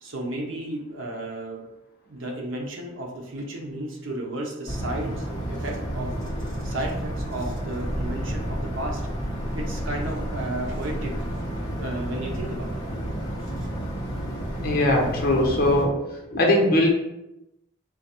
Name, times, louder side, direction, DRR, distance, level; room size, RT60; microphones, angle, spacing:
voice 1, 0.0-1.6 2.1-6.1 6.5-9.0 9.5-11.1 11.7-12.7 13.6-13.7, right 1 dB, 80° right, 0 dB, 0.9 m, -33 dB
sound 1, 4.7-15.9, equal, 20° left, 0.9 m, -31 dB
voice 2, 14.6-15.9 16.3-16.9, left 1 dB, 50° left, 0 dB, 0.9 m, -20 dB
3.9 x 2.5 x 4.3 m, 0.90 s
head